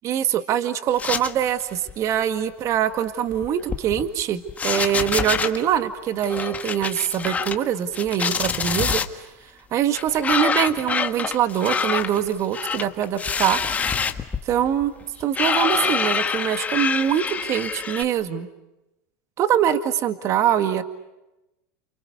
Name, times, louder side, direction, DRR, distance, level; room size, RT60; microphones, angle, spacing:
voice 1, 0.0-9.3 9.7-13.6 14.4-14.9 15.2-18.5 19.4-20.8, right 10 dB, 40° right, 10 dB, 1.9 m, -23 dB
sound 1, 1.0-1.6 1.9-2.1 3.3-4.2 4.5-5.6 6.2-7.6 7.9-9.1 9.9-18.0, left 6 dB, 20° left, 1.7 m, -25 dB
30.0 x 29.0 x 6.9 m, 0.96 s
supercardioid pair, 135°, 8 cm